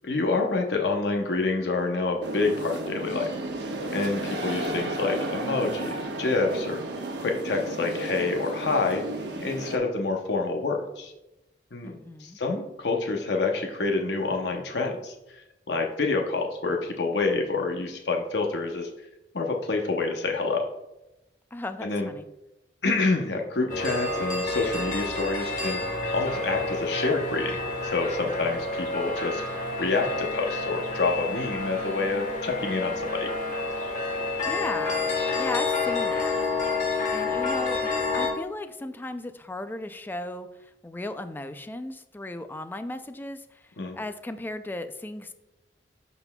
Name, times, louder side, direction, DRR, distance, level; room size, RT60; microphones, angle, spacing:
voice 1, 0.0-3.3 3.9-6.8 7.2-9.0 9.4-11.1 11.7-18.9 19.3-20.7 21.8-22.1 22.8-25.8 26.1-27.6 27.8-33.3 43.8-44.0, left 3 dB, 70° left, 2 dB, 0.8 m, -27 dB
sound 1, 2.2-9.8, right 1 dB, 85° right, 1.1 m, -33 dB
voice 2, 11.8-12.4 21.5-22.3 34.5-35.1 35.3-36.4 37.1-45.3, left 1 dB, 10° left, 10 dB, 0.3 m, -36 dB
sound 2, 23.7-38.3, left 3 dB, 45° left, 1.2 m, -29 dB
12.5 x 4.2 x 2.2 m, 0.95 s
head